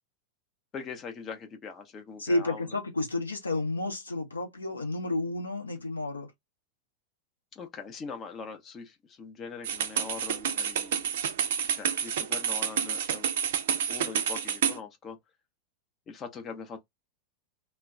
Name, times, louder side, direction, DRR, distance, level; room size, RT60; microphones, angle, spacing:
voice 1, 0.7-2.8 7.5-11.2 11.7-13.3 13.9-15.2 16.1-16.8, left 5 dB, 25° left, 0.6 m, -42 dB
voice 2, 2.2-6.3, left 2 dB, 80° left, 0.8 m, -31 dB
sound 1, 9.6-14.8, right 8 dB, 55° right, 0.4 m, -29 dB
2.2 x 2.1 x 3.6 m
figure-of-eight pair, 90°, 0 cm